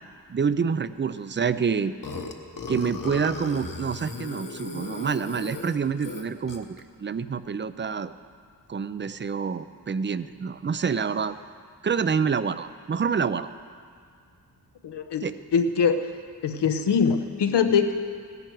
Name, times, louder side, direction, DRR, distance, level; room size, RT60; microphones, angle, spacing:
voice 1, 0.3-1.9 2.7-8.1 8.7-11.3 11.8-13.5 15.2-15.4, right 6 dB, 30° right, 13 dB, 0.4 m, -27 dB
Burping eructation, 2.0-6.8, left 3 dB, 50° left, 1.2 m, -36 dB
voice 2, 14.8-15.3 15.5-16.0 16.4-17.9, left 6 dB, 85° left, 8 dB, 0.9 m, -22 dB
16.0 x 11.0 x 4.6 m, 2.2 s
cardioid pair, 75°, 40 cm